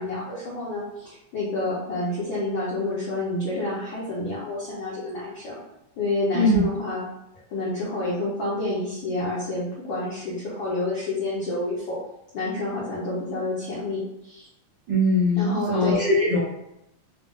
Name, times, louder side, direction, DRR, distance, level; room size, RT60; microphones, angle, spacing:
voice 1, 0.0-5.6 6.0-7.0 7.5-12.0 12.3-14.5 15.3-16.0, left 2 dB, 80° left, -7 dB, 1.1 m, -29 dB
voice 2, 14.9-16.6, left 1 dB, 60° right, -9 dB, 1.1 m, -21 dB
5.4 x 2.0 x 3.6 m, 0.84 s
omnidirectional pair, 3.5 m